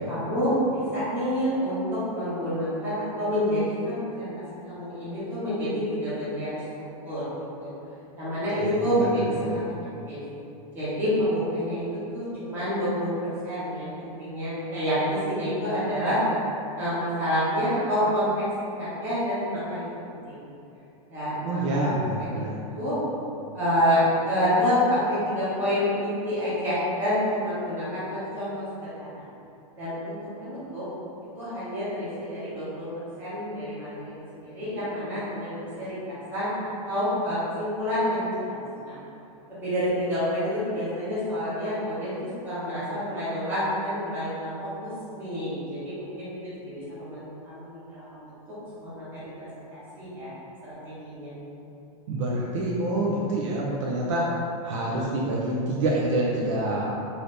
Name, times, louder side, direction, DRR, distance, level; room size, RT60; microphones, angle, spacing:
voice 1, 0.1-6.6 7.0-7.3 7.6-7.7 8.2-9.6 10.1-10.2 10.7-13.1 13.4-16.2 16.7-18.3 18.6-19.8 20.3-20.4 21.1-21.9 22.2-22.4 22.7-22.9 23.5-28.6 29.0-29.2 29.8-30.1 30.4-30.8 31.3-32.9 33.2-38.6 38.8-39.0 39.5-42.1 42.4-44.5 44.8-46.3 46.7-49.0 49.4-49.6 50.0-50.3 50.6-51.3, equal, 10° right, -12 dB, 0.9 m, -28 dB
voice 2, 8.6-9.6 21.4-22.6 52.1-54.3 54.6-56.9, right 1 dB, 55° right, -4 dB, 0.4 m, -27 dB
2.8 x 2.7 x 3.2 m, 2.8 s
supercardioid pair, 175°, 19 cm